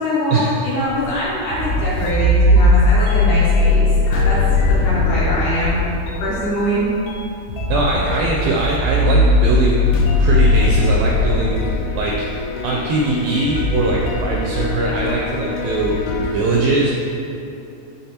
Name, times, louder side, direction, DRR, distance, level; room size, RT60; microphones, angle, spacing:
voice 1, 0.0-5.8 6.2-6.9, equal, 70° left, -9 dB, 2.1 m, -23 dB
sound 1, 1.0-16.4, left 2 dB, 85° left, 2.6 m, -19 dB
voice 2, 7.7-9.9 10.2-12.2 12.6-16.9, right 3 dB, 85° right, -2 dB, 2.0 m, -21 dB
9.9 x 3.7 x 2.8 m, 2.8 s
omnidirectional pair, 4.5 m